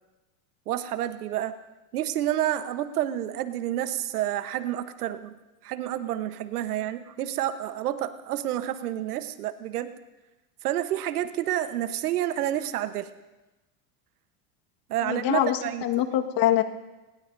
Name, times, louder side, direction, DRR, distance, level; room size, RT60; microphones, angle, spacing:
voice 1, 0.7-1.5 1.9-5.4 5.6-9.9 10.6-13.1 14.9-15.8, right 12 dB, 85° right, 11 dB, 1.2 m, -29 dB
voice 2, 15.1-16.6, left 12 dB, 50° left, 5 dB, 1.7 m, -24 dB
24.5 x 20.0 x 2.7 m, 1.1 s
supercardioid pair, 110°, 44 cm